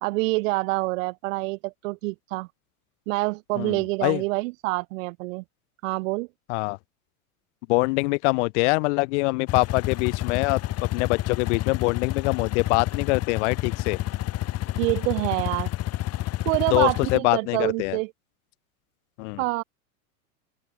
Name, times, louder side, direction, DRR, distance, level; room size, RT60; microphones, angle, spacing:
voice 1, 0.0-2.5 3.1-5.4 5.8-6.3 14.8-15.7 16.5-18.1 19.4-19.6, right 24 dB, 60° right, 0.8 m, -26 dB
voice 2, 3.6-4.2 6.5-6.8 7.7-14.0 16.7-18.0 19.2-19.4, left 26 dB, 55° left, 0.6 m, -24 dB
sound 1, 9.5-17.2, left 15 dB, 35° left, 1.5 m, -29 dB
hypercardioid pair, 120°, 44 cm